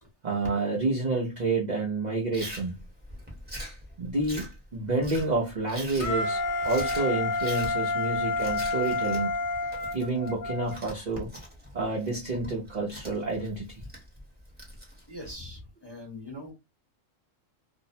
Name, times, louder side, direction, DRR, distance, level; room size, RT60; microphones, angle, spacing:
voice 1, 0.2-2.8 4.0-9.3 9.9-11.3 11.7-13.8, right 3 dB, 45° right, 0.6 m, -29 dB
Chewing mastication, 2.3-15.3, equal, 10° right, 0.9 m, -43 dB
Wind instrument woodwind instrument, 6.0-10.8, left 2 dB, 55° left, 0.5 m, -29 dB
voice 2, 15.1-16.5, left 1 dB, 20° left, 1.0 m, -42 dB
2.7 x 2.0 x 2.6 m
omnidirectional pair, 1.4 m